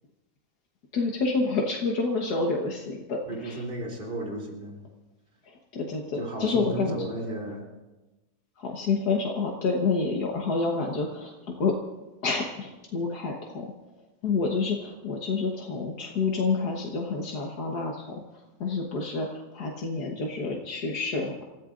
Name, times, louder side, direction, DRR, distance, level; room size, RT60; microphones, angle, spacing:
voice 1, 0.9-3.6 5.7-7.0 8.6-11.8 12.2-13.7 14.2-18.2 18.6-21.4, left 4 dB, 85° left, 0 dB, 1.9 m, -28 dB
voice 2, 3.3-4.8 6.2-7.6, right 1 dB, 35° right, -1 dB, 3.4 m, -34 dB
29.0 x 14.5 x 2.5 m, 1.1 s
omnidirectional pair, 1.6 m